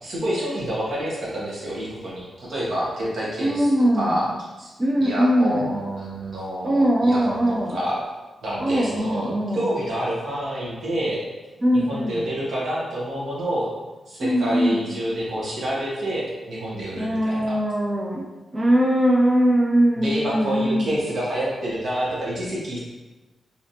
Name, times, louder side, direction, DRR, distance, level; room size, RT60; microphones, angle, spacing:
voice 1, 0.0-3.7 4.0-4.3 4.6-4.7 5.0-7.4 7.7-8.0 8.4-11.2 11.9-13.7 14.1-17.6 20.0-22.8, right 1 dB, 75° right, -6 dB, 1.2 m, -28 dB
voice 2, 3.4-4.4 4.8-5.8 6.6-7.8 8.6-9.7 11.6-12.3 14.2-14.9 17.0-21.0, equal, 25° right, -2 dB, 0.4 m, -21 dB
3.2 x 2.8 x 2.7 m, 1.2 s
cardioid pair, 75°, 0 cm